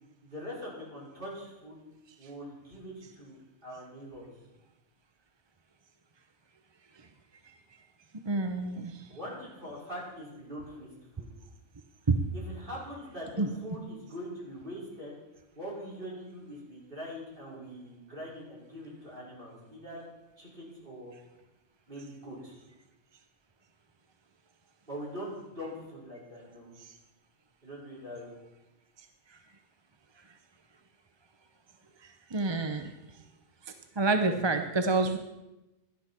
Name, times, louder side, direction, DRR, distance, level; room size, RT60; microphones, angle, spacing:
voice 1, 0.2-1.8 2.2-4.3 9.1-10.9 11.2-11.3 12.3-15.2 15.6-20.0 20.4-21.1 21.9-22.6 24.9-26.7 27.6-28.3 34.2-34.4, equal, 45° right, -6 dB, 5.5 m, -43 dB
voice 2, 8.3-9.0 12.1-12.2 13.4-13.5 32.3-32.9 34.0-35.2, right 3 dB, 25° right, 6 dB, 0.7 m, -27 dB
17.5 x 11.5 x 4.4 m, 1.0 s
omnidirectional pair, 1.2 m